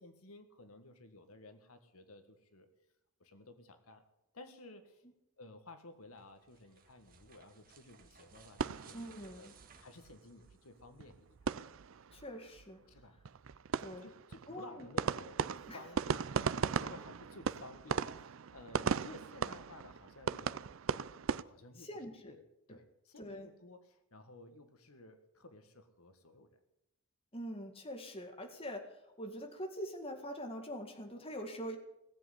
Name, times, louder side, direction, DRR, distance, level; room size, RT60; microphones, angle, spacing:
voice 1, 0.0-2.7 3.2-4.0 4.3-5.0 5.4-9.5 9.8-11.4 12.9-13.2 14.0-20.6 21.4-22.4 22.7-26.5, left 2 dB, 85° left, 8 dB, 1.8 m, -55 dB
sound 1, 6.0-11.0, right 6 dB, 40° right, 1.7 m, -62 dB
sound 2, 8.3-9.7 10.0-10.1 10.4-10.5 10.8-12.3 12.5-12.7 12.9-21.4, right 6 dB, 65° right, 0.5 m, -37 dB
voice 2, 8.9-9.5 12.1-12.8 13.8-14.1 14.5-14.9 15.7-15.8 21.8-22.3 22.7-22.8 23.2-23.5 27.3-31.8, equal, 25° left, 4 dB, 2.1 m, -44 dB
18.0 x 7.8 x 9.9 m, 0.85 s
head